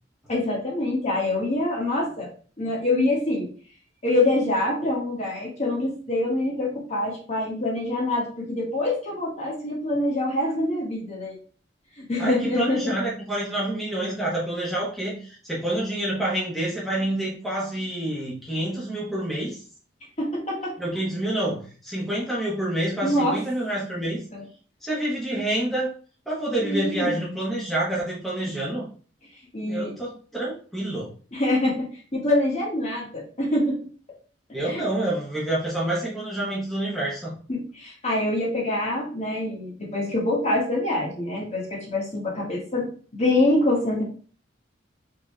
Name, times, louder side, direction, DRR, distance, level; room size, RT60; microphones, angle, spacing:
voice 1, 0.3-2.3 2.6-3.5 4.0-11.4 12.0-12.9 20.2-20.7 23.0-23.4 24.3-24.4 26.6-27.3 29.5-29.9 31.3-33.8 34.7-34.8 37.5-42.9 43.1-44.0, left 1 dB, 40° left, -3 dB, 1.6 m, -25 dB
voice 2, 12.2-19.6 20.8-24.2 24.8-25.9 26.3-28.8 29.6-31.1 34.5-37.4, right 1 dB, ahead, -6 dB, 1.2 m, -28 dB
4.0 x 3.8 x 3.2 m, 0.40 s
head